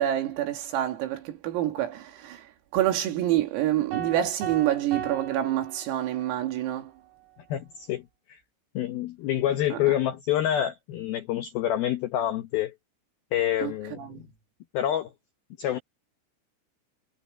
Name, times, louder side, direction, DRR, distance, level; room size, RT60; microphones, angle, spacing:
voice 1, 0.0-6.9 9.7-9.8 13.6-14.3, right 12 dB, 85° right, 5.1 m, -27 dB
sound 1, 3.9-6.4, right 7 dB, 70° right, 8.6 m, -37 dB
voice 2, 7.5-8.4 8.7-12.7 13.3-14.3 14.7-15.1 15.6-15.8, left 11 dB, 90° left, 2.1 m, -27 dB
omnidirectional pair, 5.9 m